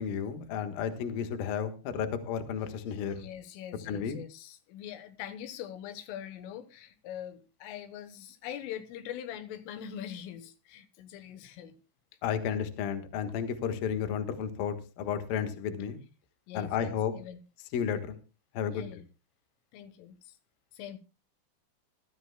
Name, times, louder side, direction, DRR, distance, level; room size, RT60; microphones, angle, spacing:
voice 1, 0.0-3.2 3.9-4.2 12.2-16.0 16.5-17.1 17.7-18.2 18.5-19.0, left 8 dB, 60° left, 2.8 m, -32 dB
voice 2, 3.1-11.8 16.5-17.4 18.7-19.0 19.7-20.4 20.7-21.0, left 10 dB, 85° left, 3.6 m, -43 dB
23.0 x 12.5 x 2.2 m
omnidirectional pair, 5.6 m